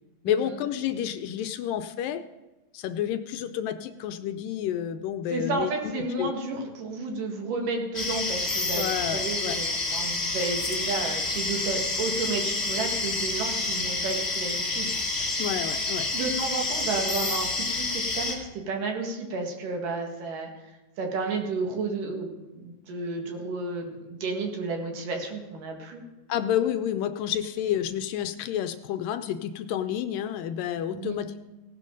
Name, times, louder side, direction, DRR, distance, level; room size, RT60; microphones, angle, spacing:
voice 1, 0.2-2.2 2.7-5.7 6.0-6.3 8.8-9.6 15.4-16.1 26.3-31.4, left 10 dB, 80° left, 9 dB, 2.2 m, -30 dB
voice 2, 5.3-15.4 16.1-20.5 21.0-22.3 22.6-26.0 30.9-31.2, right 3 dB, 65° right, 1 dB, 3.3 m, -32 dB
sound 1, 7.9-18.3, left 3 dB, 35° left, 0.9 m, -29 dB
17.0 x 11.5 x 3.9 m, 1.1 s
omnidirectional pair, 4.1 m